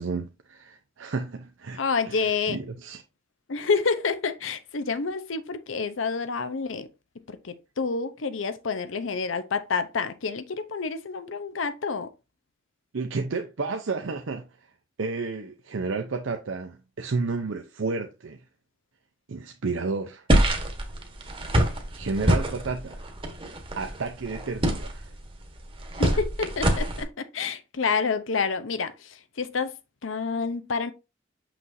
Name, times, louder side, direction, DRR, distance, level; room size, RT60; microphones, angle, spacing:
voice 1, 0.0-3.0 12.9-14.5 15.0-18.4 19.3-20.2 21.9-23.0 23.8-25.1, right 4 dB, 80° right, 0.6 m, -31 dB
voice 2, 1.8-2.6 3.5-6.9 7.3-12.1 26.0-29.7 30.0-30.9, left 5 dB, 80° left, 0.7 m, -28 dB
sound 1, 20.3-27.0, right 1 dB, 30° right, 1.2 m, -26 dB
6.2 x 6.0 x 2.6 m
head